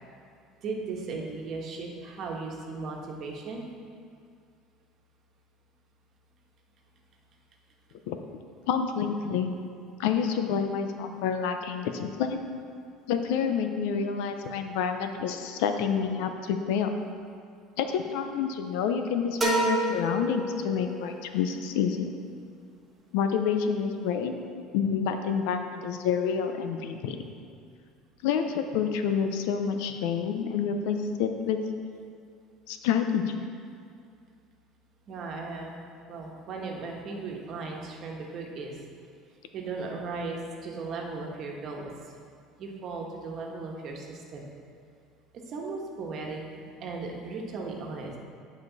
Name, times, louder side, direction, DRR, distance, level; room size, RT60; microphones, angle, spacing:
voice 1, 0.6-3.7 35.1-35.7 36.1-38.8 39.5-41.9 42.6-44.5 45.5-48.1, right 3 dB, 50° right, 0 dB, 1.3 m, -36 dB
voice 2, 8.7-9.5 10.0-12.4 13.1-16.9 17.8-22.1 23.1-24.4 24.7-27.2 28.2-31.6 32.7-33.4, left 7 dB, 80° left, 6 dB, 0.6 m, -28 dB
sound 1, 19.4-21.2, right 2 dB, 15° right, 1.3 m, -28 dB
10.5 x 5.1 x 4.1 m, 2.3 s
cardioid pair, 125°, 0 cm